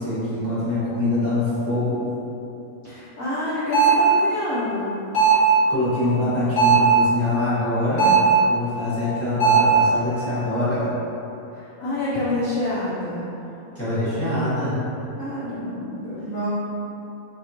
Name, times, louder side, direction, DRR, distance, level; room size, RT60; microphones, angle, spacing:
voice 1, 0.0-2.0 5.7-8.1 8.5-10.9 13.7-14.8, left 2 dB, 10° left, -13 dB, 0.6 m, -24 dB
voice 2, 2.8-4.9 11.5-13.2 15.2-16.5, left 1 dB, 85° left, -9 dB, 0.7 m, -27 dB
sound 1, 3.7-4.1 5.1-5.5 6.6-7.0 8.0-8.3 9.4-9.8, right 6 dB, 35° left, 1.1 m, -16 dB
4.3 x 3.0 x 2.8 m, 2.9 s
omnidirectional pair, 2.3 m